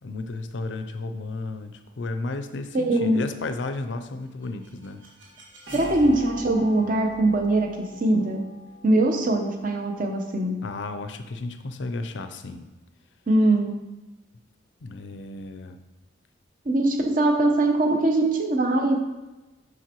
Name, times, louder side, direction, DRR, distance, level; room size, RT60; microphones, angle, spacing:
voice 1, 0.0-5.1 10.6-12.7 14.8-15.8, left 3 dB, 65° left, 9 dB, 0.5 m, -33 dB
voice 2, 2.7-3.2 5.7-8.4 8.8-10.6 13.3-13.7 16.6-19.0, right 2 dB, 45° right, 3 dB, 0.8 m, -22 dB
sound 1, 4.2-10.1, equal, 75° right, 1.9 m, -42 dB
7.4 x 6.1 x 3.0 m, 1.1 s
head